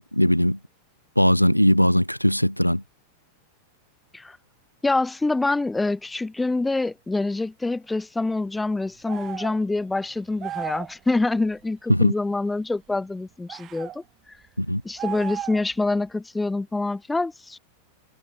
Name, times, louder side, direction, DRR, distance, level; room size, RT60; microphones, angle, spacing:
voice 1, 0.1-0.6 1.2-2.8 11.9-12.1 14.6-14.8, equal, 90° left, 0.4 m, -19 dB
voice 2, 4.8-14.0 14.8-17.6, left 2 dB, 10° left, 0.8 m, -26 dB
sound 1, 9.1-9.6 10.4-11.0 13.5-14.0 15.0-15.7, right 12 dB, 30° right, 3.5 m, -34 dB
figure-of-eight pair, 90°, 0 cm